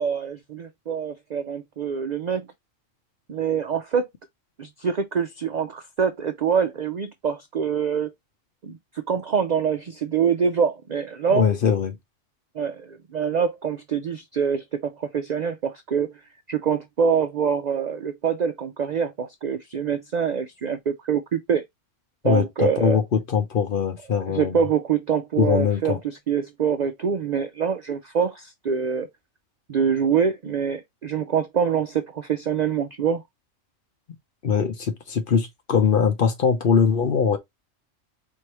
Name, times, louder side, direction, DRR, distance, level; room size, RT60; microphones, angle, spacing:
voice 1, 0.0-2.5 3.3-4.1 4.6-8.1 8.6-8.8 9.1-11.5 12.6-16.1 16.5-21.6 22.2-23.0 24.1-29.1 29.7-33.2, right 7 dB, 85° right, 0.3 m, -25 dB
voice 2, 11.3-12.0 22.2-24.5 25.4-26.0 34.4-37.4, left 6 dB, 50° left, 0.7 m, -21 dB
4.7 x 2.7 x 2.8 m
omnidirectional pair, 1.4 m